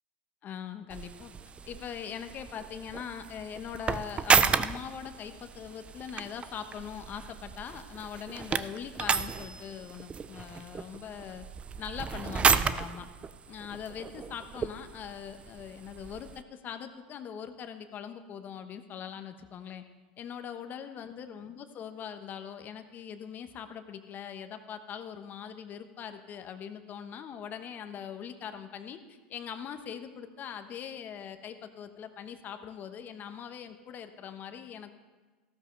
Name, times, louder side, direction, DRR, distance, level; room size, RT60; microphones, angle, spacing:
voice 1, 0.4-1.3 1.6-11.4 11.8-13.1 13.5-19.8 20.2-34.9, left 8 dB, 40° left, 9 dB, 1.1 m, -41 dB
sound 1, 0.9-16.4, right 6 dB, 25° right, 0.5 m, -32 dB
15.0 x 13.0 x 3.3 m, 1.3 s
hypercardioid pair, 95°, 5 cm